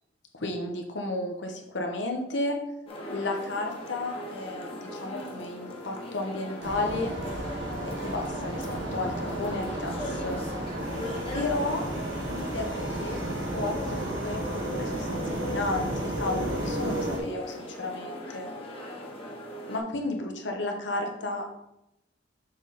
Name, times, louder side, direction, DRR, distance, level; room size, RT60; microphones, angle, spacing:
voice 1, 0.3-2.6 3.1-7.1 7.8-10.4 11.3-11.8 12.3-13.2 13.5-18.5 19.7-21.5, left 2 dB, 70° left, 2 dB, 1.1 m, -33 dB
sound 1, 2.9-19.8, left 1 dB, 30° left, 1.2 m, -39 dB
sound 2, 6.6-17.2, right 1 dB, 70° right, 1.5 m, -33 dB
7.1 x 4.0 x 4.2 m, 0.87 s
head